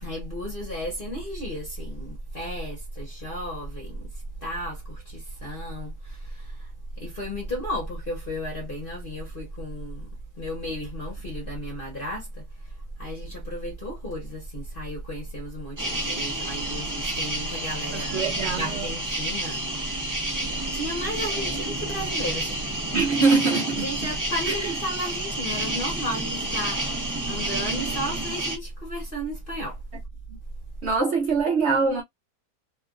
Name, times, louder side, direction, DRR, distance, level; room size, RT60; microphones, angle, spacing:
voice 1, 0.0-4.1 4.4-6.7 7.0-10.1 10.4-12.4 13.0-18.2 18.6-19.6 19.9-20.2 20.7-22.6 23.1-23.2 23.8-29.8, equal, 40° left, 1.1 m, -33 dB
sound 1, 15.8-28.6, right 1 dB, 15° right, 0.7 m, -30 dB
voice 2, 17.9-18.9 22.9-24.1 24.5-24.8 30.8-32.0, right 4 dB, 60° right, 0.8 m, -24 dB
2.9 x 2.5 x 2.3 m
omnidirectional pair, 1.7 m